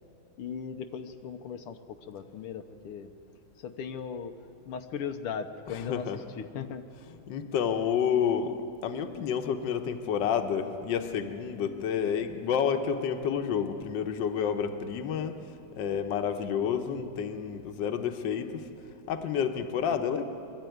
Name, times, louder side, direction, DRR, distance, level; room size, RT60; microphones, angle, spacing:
voice 1, 0.4-3.1 3.6-4.3 4.7-6.9, left 7 dB, 85° left, 6 dB, 1.8 m, -38 dB
voice 2, 5.9-6.2 7.3-8.5 8.8-15.4 15.8-18.7 19.1-20.2, left 7 dB, 65° left, 7 dB, 1.6 m, -29 dB
23.0 x 13.0 x 9.3 m, 2.6 s
omnidirectional pair, 2.4 m